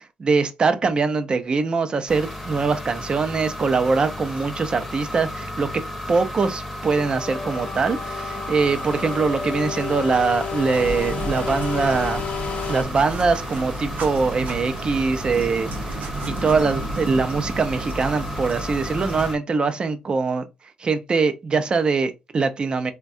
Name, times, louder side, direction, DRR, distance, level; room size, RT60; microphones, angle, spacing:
voice 1, 0.0-5.8 6.1-12.2 12.7-20.5 20.8-22.9, right 4 dB, 35° right, 0.4 m, -23 dB
sound 1, 2.1-19.4, left 1 dB, ahead, 0.7 m, -34 dB
sound 2, 6.9-12.8, left 6 dB, 65° left, 0.7 m, -31 dB
sound 3, 10.7-19.3, right 2 dB, 80° right, 0.7 m, -32 dB
3.4 x 2.1 x 2.5 m
cardioid pair, 130°, 3 cm